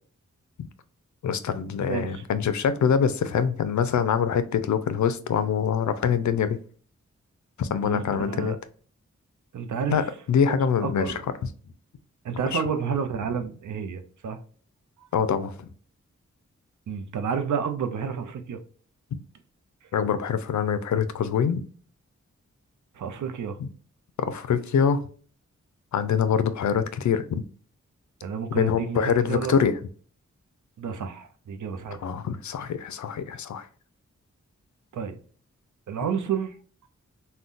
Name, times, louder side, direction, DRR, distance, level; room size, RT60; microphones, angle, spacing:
voice 1, 1.2-6.6 7.6-8.5 9.9-11.2 12.5-12.6 15.1-15.5 19.9-21.6 23.6-23.7 24.2-25.0 25.9-27.4 28.5-29.8 32.0-33.7, left 7 dB, 75° left, 0.4 m, -24 dB
voice 2, 1.9-2.2 7.8-8.6 9.5-10.0 10.5-11.2 12.2-14.4 15.0-15.1 16.9-18.6 22.9-23.6 28.2-29.6 30.8-32.1 34.9-35.2 35.9-36.6, right 6 dB, 85° right, 0.5 m, -30 dB
3.7 x 2.2 x 2.5 m
cardioid pair, 50°, 29 cm